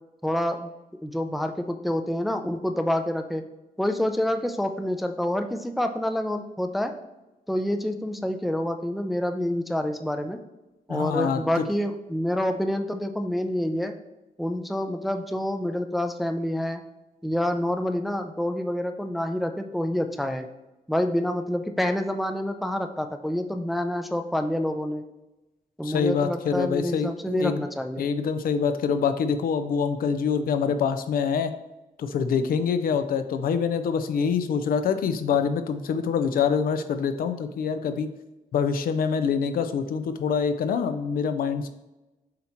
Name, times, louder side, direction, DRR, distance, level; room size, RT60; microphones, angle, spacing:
voice 1, 0.2-0.7 1.0-3.4 3.8-6.9 7.5-10.4 10.9-13.9 14.4-16.8 17.2-20.5 20.9-25.0 25.8-28.1, left 1 dB, ahead, 6 dB, 0.4 m, -27 dB
voice 2, 10.9-11.6 25.8-27.7 28.0-31.5 32.0-38.1 38.5-41.7, left 6 dB, 80° left, 9 dB, 0.5 m, -25 dB
7.6 x 2.9 x 4.3 m, 1.0 s
wide cardioid pair, 155°, 15 cm